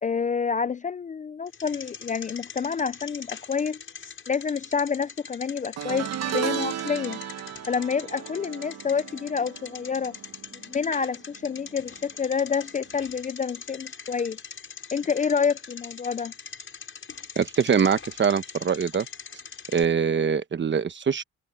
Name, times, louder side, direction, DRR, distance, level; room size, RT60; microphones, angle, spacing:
voice 1, 0.0-3.8 4.3-7.2 7.7-10.2 10.5-14.4 14.9-16.3, left 6 dB, 25° left, 0.4 m, -28 dB
Bicycle, 1.5-19.8, left 6 dB, 45° left, 7.2 m, -42 dB
sound 1, 5.8-11.2 11.4-11.8 13.0-13.1, right 9 dB, 60° right, 1.2 m, -34 dB
voice 2, 17.4-19.1 19.7-21.2, right 6 dB, 40° right, 1.2 m, -23 dB
cardioid pair, 90°, 30 cm